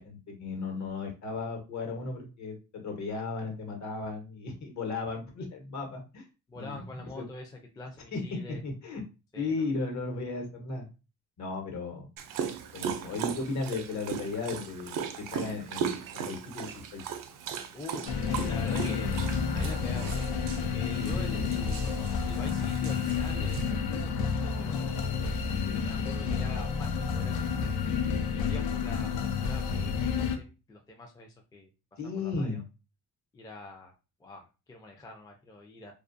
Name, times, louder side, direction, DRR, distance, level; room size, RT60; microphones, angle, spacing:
voice 1, 0.0-6.2 6.5-7.2 8.1-9.0 9.4-10.9 11.4-12.1 12.7-17.0 21.0-21.5 32.0-32.6, left 3 dB, 50° left, 2 dB, 1.1 m, -35 dB
voice 2, 6.5-8.6 9.3-9.5 17.7-19.2 19.5-20.3 20.6-21.9 22.3-24.1 24.4-25.0 25.7-27.7 28.3-32.6 33.3-33.9 34.2-35.9, left 2 dB, 10° left, 1 dB, 0.4 m, -45 dB
Dog, 12.2-23.7, right 7 dB, 65° right, 0.5 m, -38 dB
sound 1, 18.1-30.4, left 6 dB, 80° left, 0.6 m, -30 dB
2.4 x 2.2 x 2.5 m, 0.30 s
cardioid pair, 95°, 35 cm